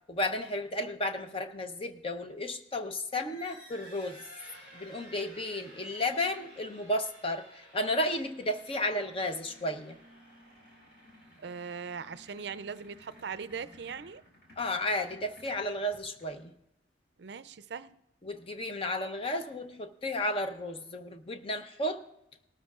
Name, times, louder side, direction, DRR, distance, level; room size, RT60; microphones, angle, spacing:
voice 1, 0.1-4.3 4.7-10.0 14.6-16.5 18.2-22.0, left 1 dB, 30° left, 7 dB, 0.7 m, -33 dB
sound 1, 3.1-16.6, equal, 55° left, 5.1 m, -55 dB
voice 2, 11.4-14.2 17.2-18.0, right 6 dB, 60° right, 14 dB, 0.4 m, -40 dB
19.0 x 13.0 x 2.4 m, 0.84 s
head